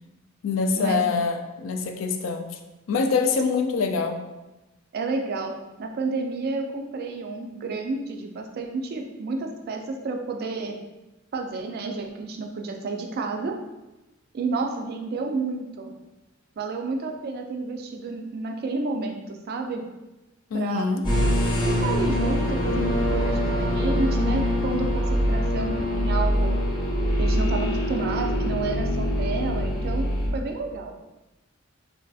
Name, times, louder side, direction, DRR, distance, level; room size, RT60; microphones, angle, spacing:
voice 1, 0.4-2.6 2.9-4.2 20.5-21.0, left 4 dB, 70° left, 5 dB, 0.3 m, -25 dB
voice 2, 4.9-10.8 11.3-13.5 14.3-15.9 16.6-19.8 20.5-20.9 21.7-26.5 27.2-30.9, right 3 dB, 50° right, 3 dB, 0.3 m, -30 dB
sound 1, 21.0-30.3, equal, 20° left, 0.8 m, -24 dB
3.2 x 2.5 x 2.3 m, 1.0 s
head